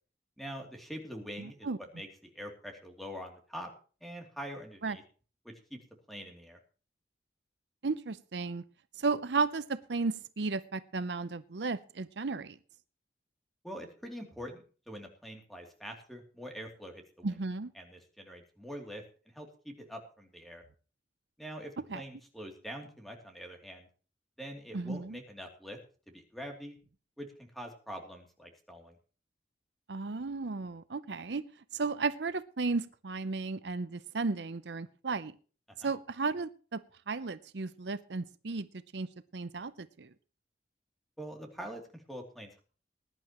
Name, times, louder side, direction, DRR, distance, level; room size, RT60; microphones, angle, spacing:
voice 1, 0.4-3.7 4.0-5.0 5.4-5.8 6.1-6.6 13.6-17.3 17.7-20.6 21.4-23.9 24.4-25.8 26.1-26.8 27.2-29.0 35.7-35.9 41.2-42.6, equal, ahead, 2 dB, 2.9 m, -44 dB
voice 2, 1.4-1.8 4.8-5.0 7.8-8.6 9.0-12.6 17.2-17.7 21.9-22.0 24.7-25.2 29.9-31.4 31.7-35.3 35.8-36.8 37.1-38.7 38.9-39.1 39.3-40.1, right 4 dB, 70° right, 13 dB, 0.7 m, -34 dB
20.5 x 11.0 x 3.1 m, 0.38 s
head